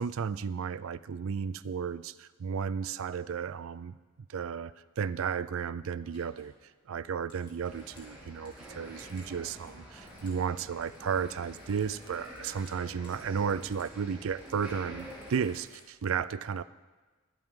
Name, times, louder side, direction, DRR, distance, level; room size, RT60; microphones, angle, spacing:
voice 1, 0.0-4.0 4.3-6.5 6.9-16.6, right 6 dB, 65° right, 16 dB, 0.4 m, -33 dB
sound 1, 6.0-10.4 10.7-14.0 14.2-16.1, left 2 dB, 20° left, 2.4 m, -62 dB
sound 2, 7.6-15.6, equal, 5° right, 3.0 m, -48 dB
21.0 x 7.7 x 3.7 m, 1.3 s
head